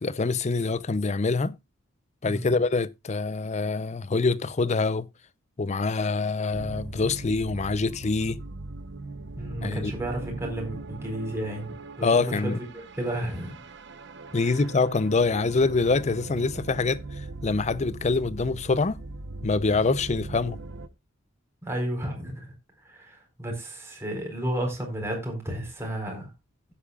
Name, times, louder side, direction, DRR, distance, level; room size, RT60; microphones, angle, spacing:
voice 1, 0.0-1.6 2.2-5.1 5.6-8.4 9.6-9.9 12.0-12.6 14.3-17.0 17.4-19.0 19.4-20.6, left 3 dB, 35° left, 0.6 m, -25 dB
voice 2, 2.2-2.6 9.4-13.5 14.4-14.6 21.6-22.5 22.8-26.3, right 1 dB, 15° right, 4.4 m, -32 dB
sound 1, 6.5-20.9, right 3 dB, 60° right, 1.0 m, -40 dB
16.5 x 8.5 x 2.3 m
head